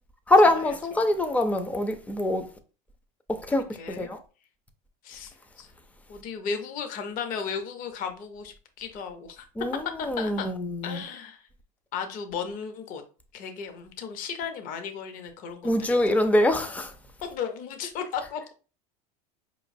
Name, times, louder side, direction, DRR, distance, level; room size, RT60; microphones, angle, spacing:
voice 1, 0.3-2.5 3.3-4.2 9.6-11.0 15.6-16.9, left 1 dB, 5° left, 0.4 m, -24 dB
voice 2, 3.5-4.2 5.0-5.7 6.1-9.5 10.0-10.5 10.8-11.4 11.9-13.0 13.3-16.2 16.5-16.7 17.2-18.5, left 6 dB, 45° left, 0.7 m, -35 dB
4.5 x 3.0 x 2.5 m
supercardioid pair, 125°, 19 cm